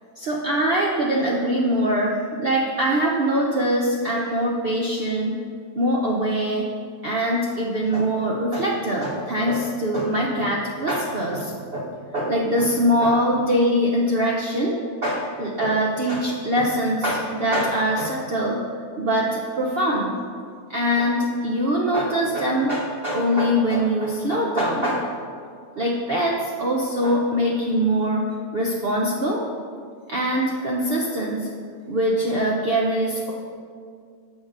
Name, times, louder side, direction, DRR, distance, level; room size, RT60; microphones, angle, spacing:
voice 1, 0.2-5.4 5.8-6.7 7.0-14.8 15.0-18.6 19.0-20.2 20.7-25.2 25.7-28.3 28.5-29.4 30.1-31.5 31.9-33.3, equal, 50° right, -3 dB, 0.8 m, -23 dB
6.4 x 4.9 x 6.6 m, 2.1 s
omnidirectional pair, 1.5 m